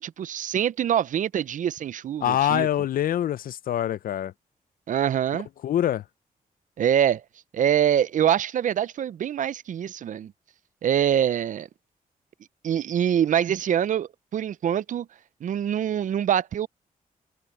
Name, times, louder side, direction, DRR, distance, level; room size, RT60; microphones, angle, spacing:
voice 1, 0.0-2.7 4.9-5.5 6.8-7.2 7.5-10.3 10.8-11.7 12.6-15.1 15.4-16.7, right 9 dB, 60° right, 0.5 m, -24 dB
voice 2, 2.2-4.3 5.6-6.0, left 11 dB, 75° left, 0.5 m, -24 dB
cardioid pair, 115°, 15 cm